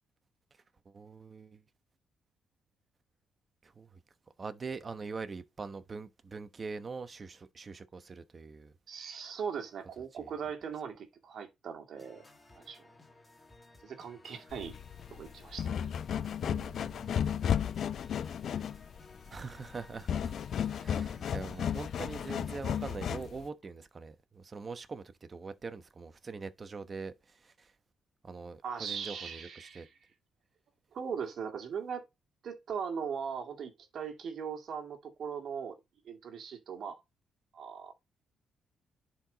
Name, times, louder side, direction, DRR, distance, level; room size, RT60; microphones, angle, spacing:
voice 1, 0.8-1.6 3.6-4.0 4.4-8.7 10.1-10.3 16.4-17.5 19.3-20.1 20.7-25.0 25.3-27.7 28.2-29.9, right 4 dB, 35° right, 1.1 m, -43 dB
voice 2, 8.9-12.2 12.5-12.8 13.8-14.7 15.1-15.9 28.6-29.9 30.9-32.0 32.4-35.8 36.1-37.0 37.5-37.9, right 7 dB, 60° right, 2.1 m, -39 dB
sound 1, 12.0-23.3, left 2 dB, 20° left, 2.2 m, -57 dB
sound 2, 14.5-23.5, left 8 dB, 60° left, 0.5 m, -34 dB
10.5 x 4.8 x 4.0 m
cardioid pair, 90°, 0 cm